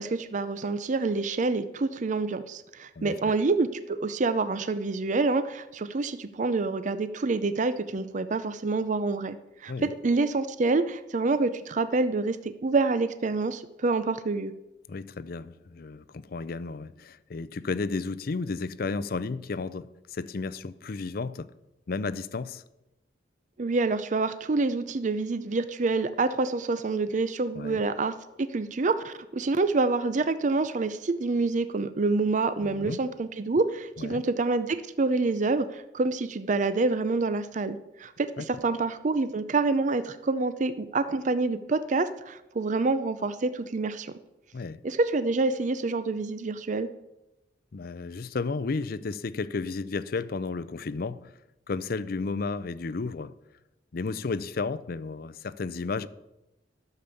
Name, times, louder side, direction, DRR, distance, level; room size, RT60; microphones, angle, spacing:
voice 1, 0.0-14.5 23.6-44.1 44.8-46.9, right 3 dB, 45° right, 0.5 m, -27 dB
voice 2, 14.9-21.5 21.9-22.6 27.5-27.8 32.6-33.0 34.0-34.2 38.4-38.5 44.5-44.8 47.7-51.3 51.7-53.3 53.9-56.1, left 4 dB, 55° left, 0.5 m, -33 dB
12.0 x 6.8 x 7.0 m
head